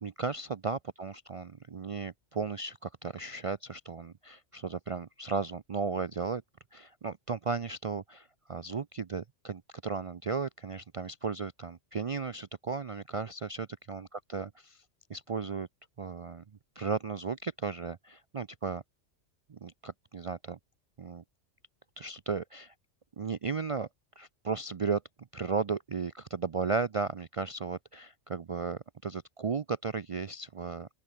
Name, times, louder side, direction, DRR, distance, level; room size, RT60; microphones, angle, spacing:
voice 1, 0.0-6.4 6.7-14.8 15.1-15.7 16.0-16.4 16.8-18.8 19.5-20.6 21.0-21.2 22.0-22.7 23.2-23.9 24.2-25.0 25.3-30.9, right 5 dB, 55° right, 0.3 m, -35 dB
open air
omnidirectional pair, 1.3 m